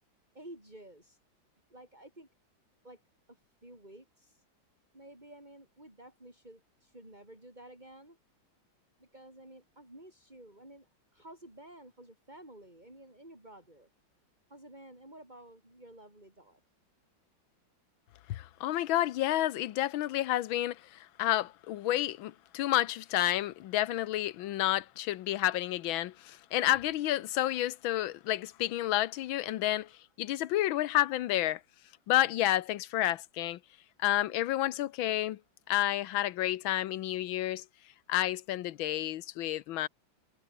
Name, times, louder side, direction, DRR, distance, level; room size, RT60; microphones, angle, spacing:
voice 1, 0.3-1.2 1.7-2.3 2.8-3.0 3.3-4.4 4.9-8.2 9.0-13.9 14.5-16.6, right 1 dB, 20° right, 7.9 m, -52 dB
voice 2, 18.3-20.8 21.2-29.9 30.2-31.6 32.1-33.6 34.0-35.4 35.7-37.6 38.1-39.9, left 14 dB, 85° left, 1.6 m, -30 dB
omnidirectional pair, 2.2 m